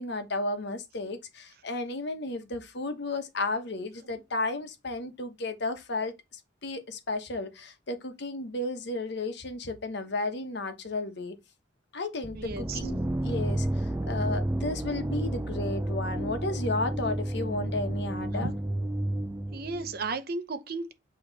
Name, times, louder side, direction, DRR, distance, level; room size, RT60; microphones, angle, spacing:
voice 1, 0.0-11.4 11.9-18.6, left 2 dB, 65° left, 1.0 m, -33 dB
sound 1, 12.2-20.1, right 1 dB, 10° right, 0.4 m, -31 dB
voice 2, 12.4-12.8 19.5-20.9, right 4 dB, 55° right, 0.8 m, -34 dB
8.1 x 3.1 x 4.0 m
head